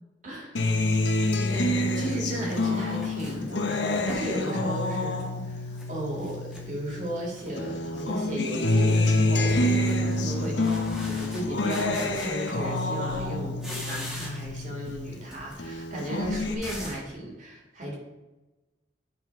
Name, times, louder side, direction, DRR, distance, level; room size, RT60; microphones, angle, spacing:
voice 1, 0.2-0.6 1.1-10.8 11.0-17.9, right 1 dB, 40° right, -2 dB, 2.2 m, -35 dB
Acoustic guitar, 0.6-7.2 7.6-15.2 15.6-16.5, left 2 dB, 75° left, 0.8 m, -27 dB
sound 1, 1.9-4.4 4.8-5.9 6.2-7.0 7.4-7.8 8.1-12.8 13.1-14.6 14.9-17.1, left 1 dB, ahead, 1.4 m, -43 dB
9.6 x 4.0 x 4.6 m, 1.1 s
head